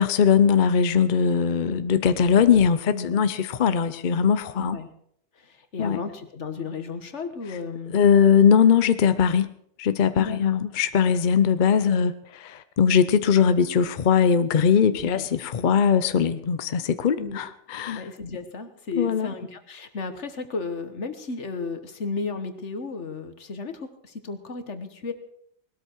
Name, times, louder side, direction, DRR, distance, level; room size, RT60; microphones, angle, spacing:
voice 1, 0.0-4.8 5.8-6.0 7.9-9.5 9.8-18.0 19.0-19.3, left 7 dB, 50° left, 12 dB, 0.8 m, -20 dB
voice 2, 2.9-3.2 4.6-4.9 5.3-7.9 10.2-10.4 15.0-15.3 17.2-17.4 17.9-25.1, left 4 dB, 75° left, 9 dB, 1.7 m, -34 dB
19.5 x 13.0 x 4.5 m, 0.69 s
omnidirectional pair, 1.2 m